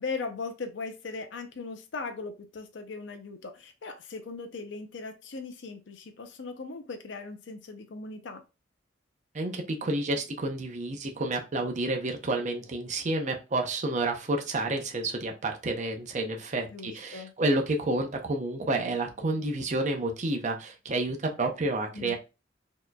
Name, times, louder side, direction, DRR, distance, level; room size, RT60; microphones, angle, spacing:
voice 1, 0.0-8.4 16.7-17.3 21.9-22.2, left 4 dB, 70° left, 6 dB, 0.5 m, -38 dB
voice 2, 9.3-22.2, right 2 dB, 40° right, 3 dB, 0.6 m, -30 dB
4.4 x 2.9 x 2.2 m, 0.28 s
head